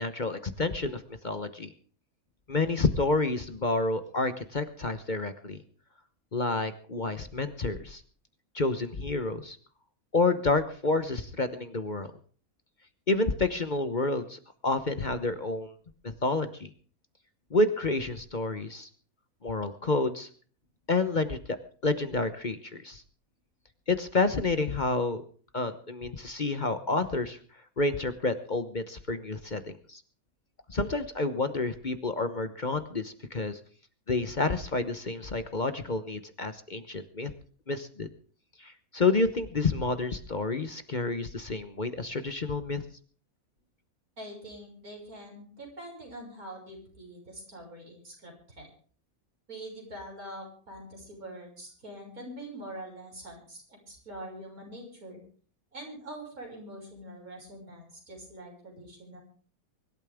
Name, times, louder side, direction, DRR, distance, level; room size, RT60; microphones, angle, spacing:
voice 1, 0.0-1.7 2.5-5.6 6.3-8.0 8.5-9.6 10.1-12.1 13.1-15.7 16.0-16.7 17.5-18.9 19.4-20.3 20.9-21.6 21.8-23.0 23.9-25.2 25.5-27.4 27.8-30.0 30.7-33.6 34.1-37.3 37.7-38.1 38.6-42.8, left 3 dB, 35° left, 10 dB, 1.0 m, -29 dB
voice 2, 44.2-48.7 49.5-55.2 55.7-59.2, right 1 dB, 90° right, 0 dB, 6.8 m, -44 dB
24.0 x 12.5 x 3.6 m, 0.44 s
omnidirectional pair, 1.5 m